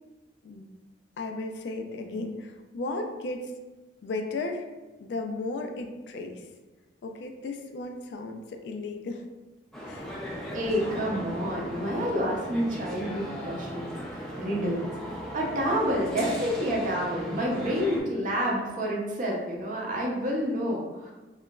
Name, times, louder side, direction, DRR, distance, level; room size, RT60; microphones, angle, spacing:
voice 1, 1.2-3.5 4.0-4.6 5.0-6.5 7.0-9.3 9.9-10.2, left 2 dB, 75° left, 4 dB, 0.3 m, -35 dB
sound 1, 9.7-18.0, equal, 5° left, 0.4 m, -37 dB
voice 2, 10.5-14.9 15.3-21.1, equal, 50° right, -2 dB, 0.6 m, -29 dB
2.9 x 2.3 x 2.2 m, 1.1 s
head